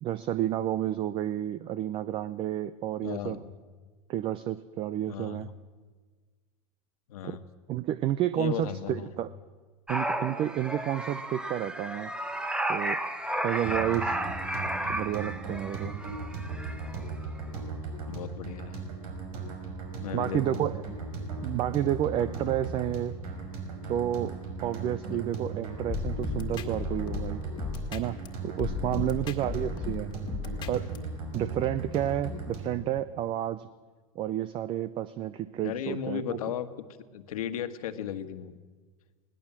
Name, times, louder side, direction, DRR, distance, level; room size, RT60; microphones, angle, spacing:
voice 1, 0.0-3.4 4.1-5.5 7.2-7.4 7.7-9.3 9.9-12.1 12.7-13.0 13.4-14.2 14.9-15.9 20.1-20.7 21.4-23.2 23.9-27.4 27.9-28.2 28.4-30.1 30.7-30.9 31.3-33.7 34.2-36.4, right 12 dB, 30° right, 15 dB, 0.6 m, -30 dB
voice 2, 3.0-3.5 5.1-5.5 7.1-7.4 8.4-9.2 14.2-14.3 18.1-18.8 20.0-20.9 25.1-25.2 28.9-29.3 35.6-36.7 37.1-38.6, left 9 dB, 80° left, 10 dB, 1.6 m, -36 dB
sound 1, 9.9-17.0 17.2-17.4, right 1 dB, 5° right, 1.0 m, -33 dB
sound 2, 13.6-32.8, right 3 dB, 80° right, 5.8 m, -37 dB
sound 3, 25.9-28.3 28.6-31.0, left 7 dB, 25° left, 1.9 m, -35 dB
20.0 x 18.5 x 7.4 m, 1.4 s
supercardioid pair, 145°, 18 cm